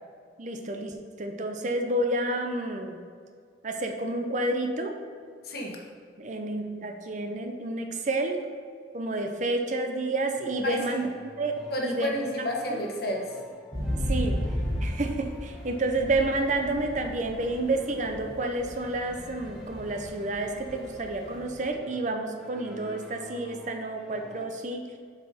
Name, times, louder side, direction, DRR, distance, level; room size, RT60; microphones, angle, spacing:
voice 1, 0.4-3.0 3.6-4.9 6.2-8.4 8.9-11.1 11.4-11.6 11.8-12.1 14.1-14.4 14.8-24.9, right 2 dB, 40° right, 5 dB, 0.5 m, -30 dB
voice 2, 5.4-5.8 10.6-11.0 11.7-13.2, equal, 55° left, 0 dB, 1.2 m, -30 dB
sound 1, 10.1-24.5, equal, ahead, 0.8 m, -50 dB
sound 2, 13.7-21.6, equal, 20° left, 1.5 m, -34 dB
7.2 x 4.8 x 4.2 m, 2.1 s
head